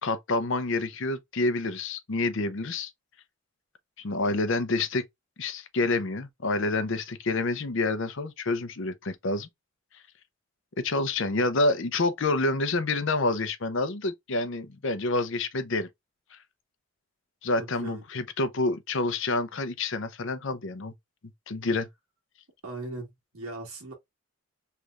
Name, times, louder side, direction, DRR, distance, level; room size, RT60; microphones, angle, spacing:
voice 1, 0.0-2.9 4.0-5.0 5.4-9.5 10.8-15.9 16.3-16.4 17.4-20.9 21.5-21.9, left 2 dB, 55° left, 0.6 m, -28 dB
voice 2, 17.6-18.0 22.6-23.9, right 2 dB, 80° right, 1.5 m, -39 dB
3.3 x 3.1 x 2.4 m
head